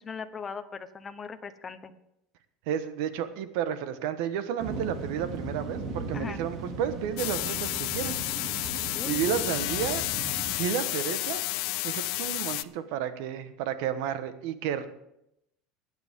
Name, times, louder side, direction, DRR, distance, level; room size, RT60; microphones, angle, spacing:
voice 1, 0.0-1.9 6.1-6.4 8.9-9.2, left 5 dB, 20° left, 10 dB, 0.9 m, -39 dB
voice 2, 2.7-8.2 8.5-8.6 9.1-10.1 10.5-11.4 11.8-14.9, right 9 dB, 70° right, 11 dB, 1.2 m, -32 dB
sound 1, 4.6-10.6, right 3 dB, 40° right, 2.5 m, -37 dB
sound 2, 7.2-12.6, left 21 dB, 65° left, 0.4 m, -31 dB
21.0 x 9.2 x 3.7 m, 0.81 s
supercardioid pair, 145°, 0 cm